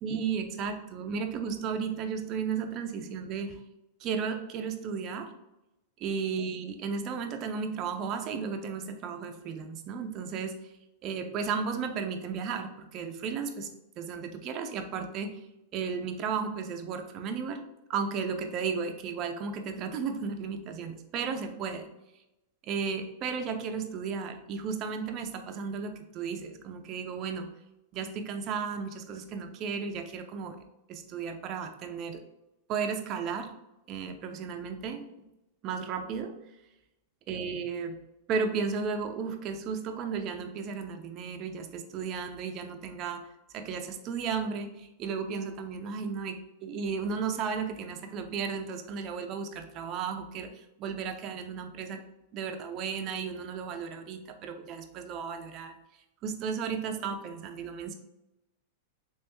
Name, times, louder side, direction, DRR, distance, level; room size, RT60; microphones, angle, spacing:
voice 1, 0.0-3.6 4.0-5.3 6.0-10.6 11.0-13.7 14.0-15.4 15.7-17.6 17.9-21.9 22.6-27.5 27.9-30.6 30.9-32.2 32.7-33.5 33.9-35.1 35.6-36.3 37.3-38.0 38.3-43.3 43.5-52.0 52.3-55.7 56.2-57.9, right 6 dB, 40° right, 5 dB, 0.5 m, -34 dB
3.3 x 3.0 x 2.9 m, 0.93 s
hypercardioid pair, 125°, 0 cm